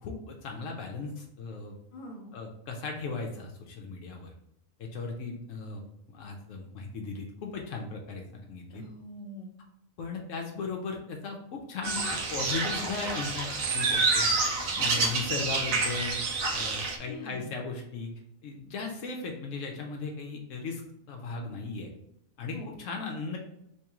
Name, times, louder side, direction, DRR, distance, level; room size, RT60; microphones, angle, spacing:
voice 1, 0.0-1.7 2.3-4.3 4.8-5.8 6.1-8.8 10.0-12.0 12.3-14.3 14.8-16.2 16.5-18.1 18.4-20.8 21.1-21.9 22.4-23.4, left 4 dB, 75° left, 1 dB, 0.9 m, -37 dB
voice 2, 1.9-2.3 8.7-9.5 14.9-15.1 17.1-17.6 22.5-22.7, left 1 dB, 40° left, 0 dB, 0.8 m, -43 dB
sound 1, 11.8-17.0, right 3 dB, 85° right, 1.0 m, -28 dB
3.5 x 3.1 x 2.9 m, 0.80 s
omnidirectional pair, 1.4 m